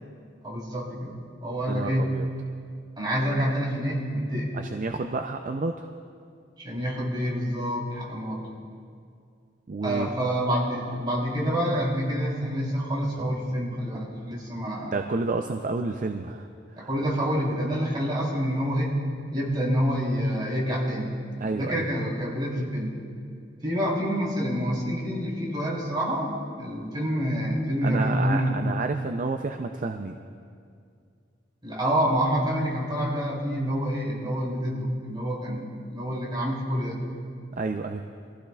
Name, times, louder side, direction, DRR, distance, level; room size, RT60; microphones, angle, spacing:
voice 1, 0.4-2.1 3.0-4.5 6.6-8.4 9.8-15.0 16.8-18.9 19.3-22.9 23.6-28.7 31.6-37.0, equal, 25° right, -4 dB, 3.4 m, -27 dB
voice 2, 1.7-2.3 4.5-5.9 9.7-10.1 14.9-16.5 16.8-16.9 21.4-21.9 27.8-30.2 37.6-38.0, right 3 dB, 45° right, 5 dB, 0.5 m, -30 dB
24.0 x 15.0 x 2.4 m, 2.3 s
head